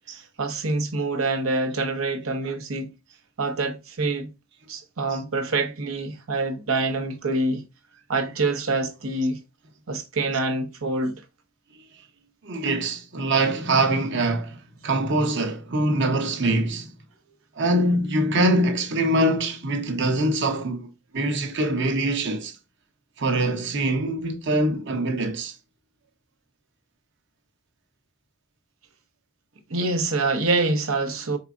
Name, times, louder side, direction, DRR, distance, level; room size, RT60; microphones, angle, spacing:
voice 1, 0.4-2.9 3.4-4.3 4.7-7.6 8.1-9.4 9.9-11.1 29.7-31.4, right 3 dB, 85° right, 0.9 m, -25 dB
voice 2, 12.4-16.9 17.6-20.9 21.1-22.6 23.2-25.5, right 1 dB, 60° right, 0.9 m, -24 dB
4.8 x 4.0 x 2.4 m
head